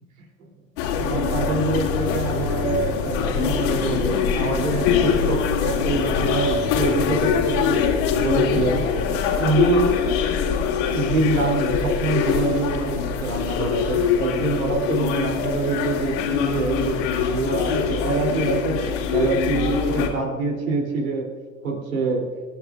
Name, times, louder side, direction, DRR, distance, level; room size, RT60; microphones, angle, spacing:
sound 1, 0.8-20.1, left 7 dB, 60° left, 2.3 m, -23 dB
voice 1, 1.0-10.0 10.6-21.2 21.6-22.3, right 3 dB, 75° right, 2 dB, 3.2 m, -25 dB
25.0 x 11.0 x 2.4 m, 1.5 s
hypercardioid pair, 85°, 42 cm